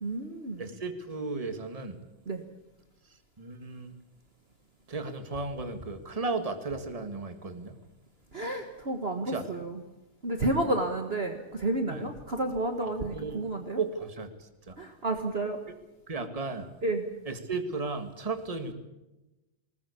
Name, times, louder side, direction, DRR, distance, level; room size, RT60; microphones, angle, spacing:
voice 1, 0.0-0.7 2.3-2.4 8.3-9.8 10.2-13.8 14.8-15.6 16.8-17.1, right 2 dB, 45° right, 5 dB, 0.7 m, -31 dB
voice 2, 0.6-2.0 3.4-3.9 4.9-7.8 9.3-9.4 11.9-12.1 12.8-13.4 13.8-14.7 16.1-16.7 17.3-18.7, right 3 dB, 20° right, 8 dB, 1.1 m, -35 dB
20.5 x 20.0 x 8.4 m, 0.98 s
omnidirectional pair, 3.7 m